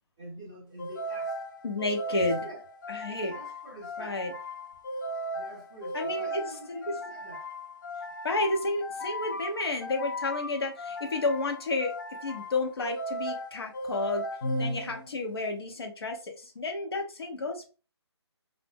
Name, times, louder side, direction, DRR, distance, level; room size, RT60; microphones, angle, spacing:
voice 1, 0.2-1.4 2.0-2.6 3.1-4.2 5.3-7.5, right 1 dB, 10° right, 0.4 m, -46 dB
sound 1, 0.8-15.3, equal, 45° left, 0.5 m, -37 dB
voice 2, 1.6-2.5 2.9-3.3 4.0-4.3 5.9-6.4 6.7-6.8 8.2-11.9 12.2-14.2 14.6-17.7, left 3 dB, 60° left, 0.8 m, -31 dB
2.5 x 2.0 x 3.5 m
hypercardioid pair, 170°, 15 cm